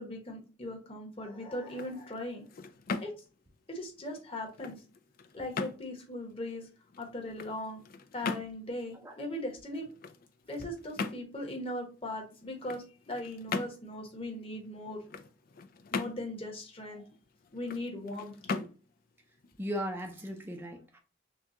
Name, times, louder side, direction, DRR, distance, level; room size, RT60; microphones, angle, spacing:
voice 1, 0.0-2.4 3.0-3.1 3.7-4.8 5.3-6.7 7.0-7.8 8.1-9.9 10.5-15.0 15.9-17.0 17.5-18.6, left 1 dB, 30° left, 1.2 m, -39 dB
sound 1, 1.6-20.4, left 4 dB, 45° left, 0.4 m, -42 dB
voice 2, 19.6-21.0, equal, 10° right, 0.5 m, -37 dB
6.0 x 2.3 x 2.8 m
head